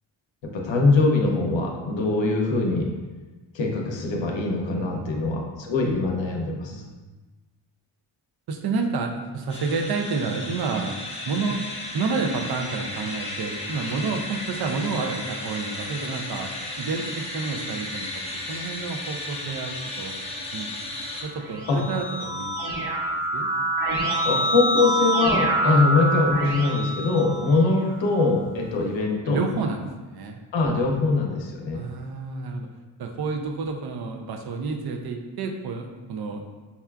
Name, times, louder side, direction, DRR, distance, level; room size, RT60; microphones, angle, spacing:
voice 1, 0.4-2.9 3.5-6.8 21.7-21.8 24.2-29.4 30.5-31.9, left 3 dB, 65° left, 0 dB, 0.7 m, -23 dB
voice 2, 4.7-5.3 6.7-7.0 8.5-11.0 11.3-11.6 11.9-16.5 16.8-18.1 18.5-20.2 20.5-20.7 21.2-22.8 23.1-23.5 25.6-25.9 29.3-30.4 31.7-32.7 33.0-36.4, right 4 dB, 55° right, 3 dB, 0.5 m, -30 dB
sound 1, 9.5-21.2, left 1 dB, 15° left, 0.5 m, -34 dB
Keyboard (musical), 21.3-27.9, right 1 dB, 75° right, 1.5 m, -26 dB
5.5 x 2.3 x 2.3 m, 1.3 s
wide cardioid pair, 130°, 48 cm